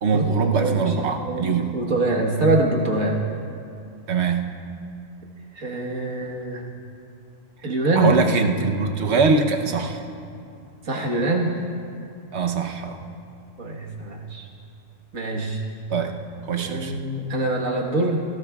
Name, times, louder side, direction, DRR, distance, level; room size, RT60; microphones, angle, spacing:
voice 1, 0.0-1.7 4.1-4.5 7.9-10.0 12.3-13.0 15.9-16.2 16.4-17.0, right 4 dB, 60° right, 4 dB, 1.1 m, -22 dB
voice 2, 0.5-0.9 1.2-3.2 5.6-6.6 7.6-8.1 10.9-11.5 13.6-14.5 15.1-15.6 16.6-18.2, right 2 dB, 85° right, -1 dB, 1.9 m, -24 dB
19.0 x 16.0 x 2.4 m, 2.5 s
omnidirectional pair, 1.3 m